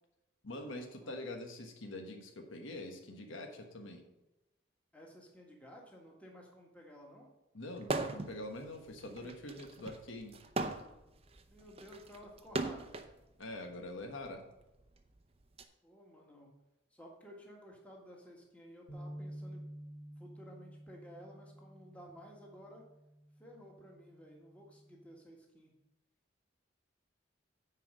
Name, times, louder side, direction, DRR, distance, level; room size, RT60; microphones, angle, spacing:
voice 1, 0.4-4.1 7.5-10.4 13.4-14.5, left 1 dB, 85° left, 4 dB, 1.3 m, -44 dB
voice 2, 4.9-7.3 11.4-12.9 15.8-16.5 16.9-19.7 20.2-22.8 23.4-25.7, equal, 5° left, -1 dB, 1.7 m, -54 dB
sound 1, 7.8-8.4 8.7-13.1 14.0-15.6, right 2 dB, 30° right, 0.6 m, -39 dB
sound 2, 18.9-25.1, equal, 60° left, 1.7 m, -51 dB
9.7 x 4.8 x 6.2 m, 0.96 s
head